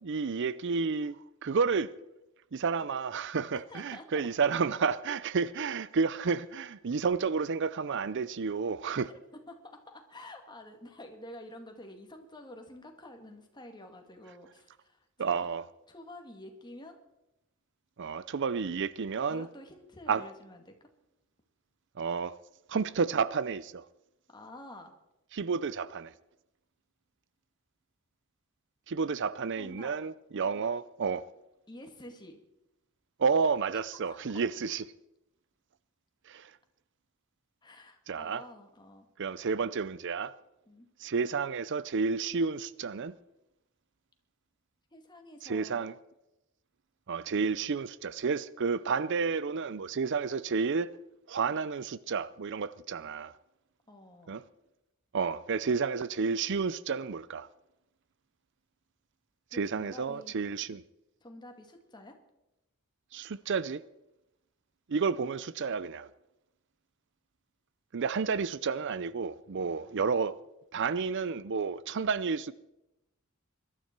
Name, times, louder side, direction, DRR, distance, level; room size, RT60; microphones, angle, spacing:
voice 1, 0.0-1.2 1.4-1.9 2.5-9.1 15.2-15.7 18.0-19.5 20.1-20.2 22.0-22.3 22.7-23.9 25.3-26.1 28.9-31.2 33.2-34.8 36.3-36.5 38.1-38.4 39.2-40.3 41.0-43.1 45.4-45.9 47.1-50.9 51.3-53.3 54.3-54.4 55.1-57.5 59.5-60.8 63.1-63.8 64.9-66.1 67.9-70.4 70.7-72.5, right 5 dB, 60° right, 0.5 m, -31 dB
voice 2, 3.5-4.1 9.0-9.6 9.9-15.0 15.3-15.4 15.9-17.0 19.3-20.9 24.3-24.9 29.6-29.9 31.7-32.4 34.0-34.2 37.6-39.1 40.7-40.9 44.9-45.9 53.9-54.4 59.5-60.4 61.2-62.2 69.6-69.9, left 1 dB, 20° left, 2.2 m, -49 dB
21.5 x 12.5 x 4.6 m
head